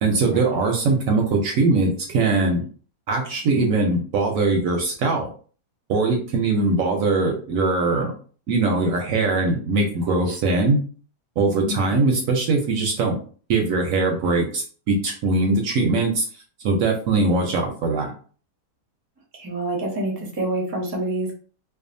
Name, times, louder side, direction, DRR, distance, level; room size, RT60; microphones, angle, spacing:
voice 1, 0.0-2.7 3.1-5.3 5.9-8.1 8.5-10.8 11.4-13.2 13.5-16.2 16.6-18.1, right 3 dB, 70° right, 1 dB, 0.9 m, -21 dB
voice 2, 11.7-12.0 17.1-17.3 19.3-21.3, right 1 dB, 30° right, -2 dB, 0.4 m, -28 dB
2.6 x 2.3 x 2.5 m, 0.41 s
omnidirectional pair, 1.7 m